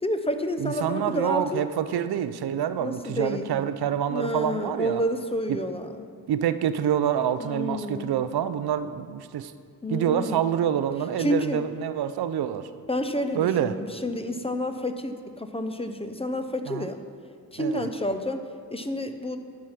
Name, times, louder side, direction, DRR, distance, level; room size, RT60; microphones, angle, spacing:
voice 1, 0.0-1.6 2.8-3.5 4.1-6.0 7.4-8.1 9.8-10.4 11.2-11.6 12.9-17.0 17.5-18.4 18.7-19.4, left 1 dB, 15° left, 8 dB, 0.6 m, -29 dB
voice 2, 0.6-5.0 5.5-5.6 6.3-9.5 9.9-12.7 13.3-13.7 16.7-16.9 17.6-17.9, right 9 dB, 85° right, 12 dB, 0.5 m, -27 dB
11.5 x 4.8 x 5.8 m, 2.1 s
cardioid pair, 65°, 37 cm